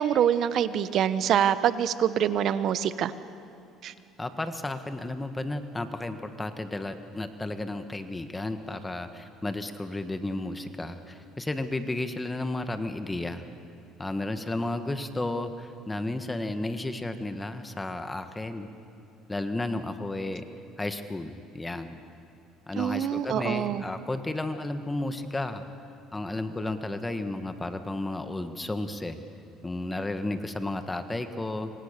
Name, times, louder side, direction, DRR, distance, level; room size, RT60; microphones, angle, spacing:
voice 1, 0.0-3.1 3.8-3.9 22.8-23.8, right 9 dB, 60° right, 14 dB, 1.1 m, -25 dB
voice 2, 4.2-13.4 14.0-18.7 19.3-20.4 20.8-22.0 22.7-25.6 26.1-29.2 29.6-31.7, left 2 dB, 15° left, 8 dB, 1.6 m, -33 dB
27.5 x 25.0 x 6.8 m, 2.8 s
supercardioid pair, 95°, 0 cm